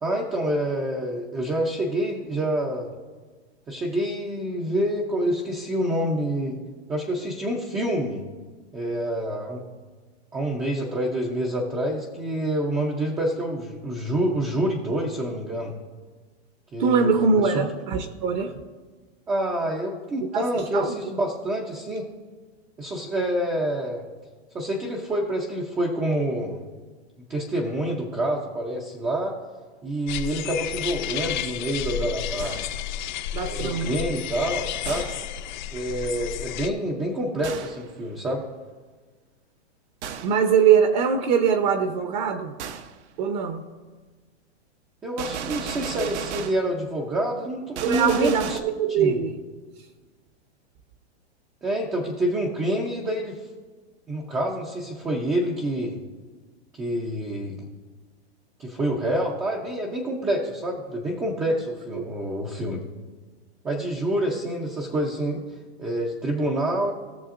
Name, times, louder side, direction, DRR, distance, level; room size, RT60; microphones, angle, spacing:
voice 1, 0.0-2.9 3.7-6.6 6.9-8.2 8.7-9.6 10.3-15.7 16.7-17.1 17.4-17.7 19.3-22.1 22.8-24.0 24.5-26.6 27.3-29.3 29.8-32.7 33.4-35.1 35.7-38.4 45.0-48.6 49.0-49.2 51.6-53.4 54.1-56.0 56.8-57.7 58.6-62.8 63.6-65.4 65.8-66.9, right 1 dB, 5° right, -2 dB, 0.4 m, -27 dB
voice 2, 16.8-18.6 20.3-20.5 20.7-20.9 33.3-33.9 40.2-42.5 43.2-43.6 47.8-49.4 61.9-62.0, right 6 dB, 40° right, 7 dB, 0.7 m, -22 dB
sound 1, 30.1-36.7, left 11 dB, 45° left, 0.6 m, -32 dB
Gunshot gunfire, 32.4-32.9 34.8-35.4 37.4-37.9 40.0-40.4 42.6-43.0 45.2-46.7 47.7-48.6, right 7 dB, 85° right, 0.9 m, -34 dB
18.5 x 6.8 x 2.5 m, 1.4 s
supercardioid pair, 160°, 33 cm